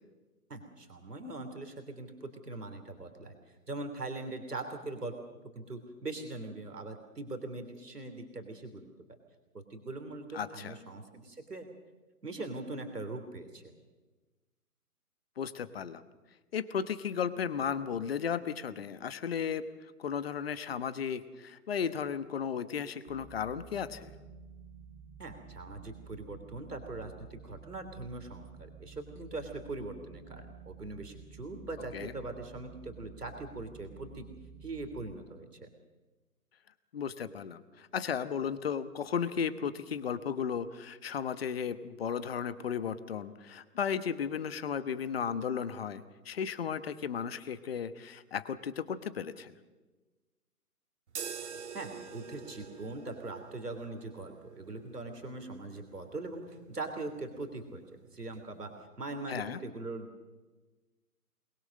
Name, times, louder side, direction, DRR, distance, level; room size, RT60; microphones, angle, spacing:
voice 1, 0.5-3.3 3.7-5.1 5.5-8.9 9.5-11.7 12.2-13.7 25.2-34.2 34.6-35.7 51.7-57.8 58.1-58.7 59.0-60.3, right 2 dB, 85° right, 6 dB, 3.2 m, -41 dB
voice 2, 10.3-10.8 15.4-16.0 16.5-19.6 20.0-24.1 31.9-32.1 36.9-49.5 59.3-59.6, left 7 dB, 40° left, 13 dB, 1.2 m, -35 dB
sound 1, 23.1-35.1, right 5 dB, 25° right, 3.2 m, -51 dB
sound 2, 51.1-58.9, right 6 dB, 45° right, 2.0 m, -48 dB
23.0 x 21.5 x 6.6 m, 1.2 s
figure-of-eight pair, 145°, 46 cm